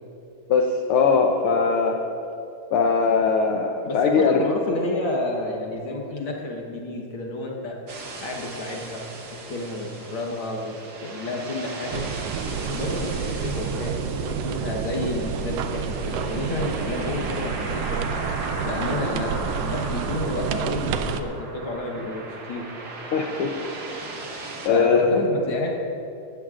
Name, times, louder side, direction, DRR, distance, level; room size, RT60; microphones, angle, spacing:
voice 1, 0.5-2.0 2.7-4.4 23.1-23.5 24.6-25.2, left 5 dB, 90° left, 3 dB, 1.2 m, -20 dB
voice 2, 3.8-7.8 8.2-10.7 11.0-12.1 12.5-18.1 18.6-22.2 22.5-22.7 24.7-25.8, left 2 dB, 55° left, 0 dB, 1.6 m, -30 dB
sound 1, 7.9-24.7, right 2 dB, 50° right, 1.3 m, -37 dB
sound 2, 11.9-21.2, right 6 dB, 80° right, 1.5 m, -29 dB
19.0 x 14.0 x 2.5 m, 2.8 s
omnidirectional pair, 3.4 m